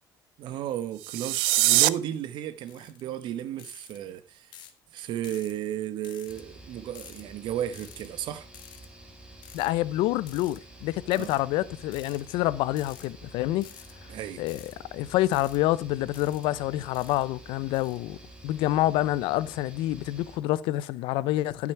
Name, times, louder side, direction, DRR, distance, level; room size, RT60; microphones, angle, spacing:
voice 1, 0.4-4.6 4.9-8.5 11.1-11.3 14.1-14.4, right 11 dB, 65° right, 0.9 m, -34 dB
sound 1, 0.9-1.9, right 19 dB, 85° right, 0.4 m, -22 dB
sound 2, 2.7-3.0 3.6-4.0 4.5-4.8 5.2-5.5 6.0-6.4 6.9-7.2 7.7-8.1 8.5-8.9 9.4-9.7 10.3-10.6 11.1-11.4 11.9-12.2 12.7-13.1 13.6-13.9 14.5-14.7 15.3-15.6 16.1-16.5 16.9-17.2 17.7-18.0, left 11 dB, 65° left, 1.1 m, -49 dB
sound 3, 6.3-20.4, right 1 dB, 10° right, 2.2 m, -49 dB
voice 2, 9.5-13.7 14.4-18.2 18.4-21.7, left 15 dB, 80° left, 0.5 m, -27 dB
10.5 x 5.9 x 4.5 m
cardioid pair, 115°, 9 cm